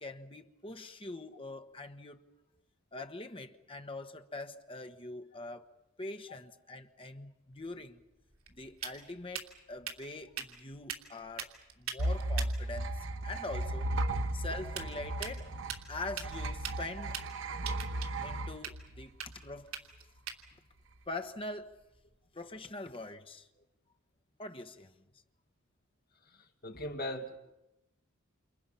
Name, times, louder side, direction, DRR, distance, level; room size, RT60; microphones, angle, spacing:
voice 1, 0.0-2.2 2.9-5.7 6.0-8.0 8.5-13.0 13.2-13.9 14.3-15.5 15.9-17.3 18.2-19.8 21.1-21.7 22.3-23.5 24.4-24.9, left 2 dB, 25° left, 1.3 m, -43 dB
sound 1, 7.5-22.2, right 8 dB, 80° right, 3.0 m, -46 dB
sound 2, 12.0-19.5, right 1 dB, 60° right, 1.0 m, -35 dB
voice 2, 26.2-27.4, left 1 dB, 45° left, 2.3 m, -40 dB
28.5 x 28.5 x 5.8 m
head